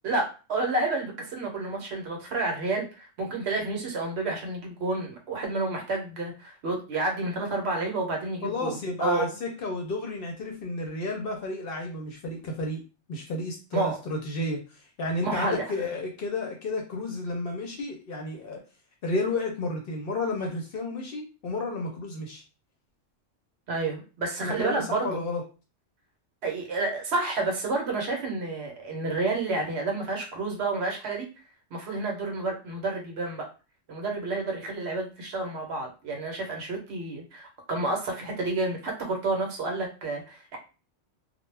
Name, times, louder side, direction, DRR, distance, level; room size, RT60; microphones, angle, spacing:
voice 1, 0.0-9.3 13.7-14.0 15.2-15.9 23.7-25.2 26.4-31.3 31.7-33.5 33.9-40.6, right 2 dB, 65° right, 1 dB, 0.9 m, -30 dB
voice 2, 8.4-12.8 13.1-18.6 19.0-22.4 24.4-25.4, left 2 dB, 60° left, 1 dB, 0.7 m, -32 dB
2.2 x 2.1 x 3.2 m, 0.33 s
omnidirectional pair, 1.3 m